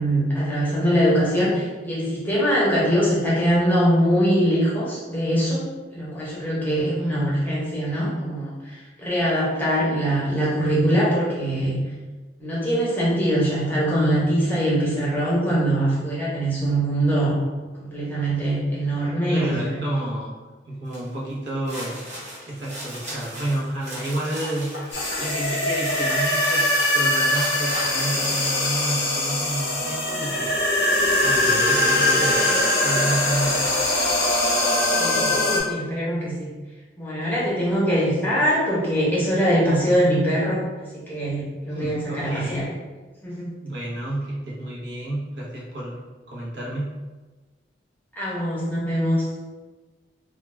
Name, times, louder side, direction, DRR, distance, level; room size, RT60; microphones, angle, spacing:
voice 1, 0.0-5.6 5.9-11.8 12.4-17.4 17.8-19.8 35.0-36.5 37.0-42.7 43.2-43.5 48.2-49.2, equal, 10° left, -7 dB, 0.7 m, -22 dB
voice 2, 7.0-7.4 19.3-20.3 20.7-22.0 22.4-30.6 31.2-32.5 32.8-33.8 41.7-42.7 43.6-46.0 46.3-46.9, right 1 dB, 85° right, -5 dB, 0.7 m, -30 dB
sound 1, 20.9-21.1 21.5-28.9, equal, 40° right, 0.8 m, -36 dB
sound 2, 24.9-35.6, left 1 dB, 70° left, 0.7 m, -22 dB
2.2 x 2.2 x 3.1 m, 1.3 s
head